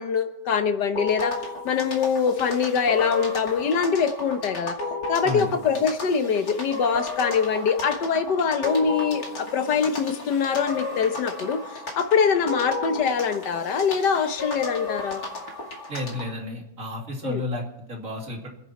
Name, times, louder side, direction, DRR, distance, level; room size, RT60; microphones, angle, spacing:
voice 1, 0.0-1.4 1.7-4.8 5.1-11.6 12.0-15.2 17.2-17.4, left 6 dB, 85° left, 8 dB, 1.8 m, -23 dB
sound 1, 1.0-16.3, left 2 dB, 60° left, 3.0 m, -34 dB
voice 2, 5.2-5.6 15.9-18.5, left 2 dB, 50° right, 1 dB, 2.8 m, -32 dB
26.0 x 10.0 x 4.3 m, 0.86 s
omnidirectional pair, 1.8 m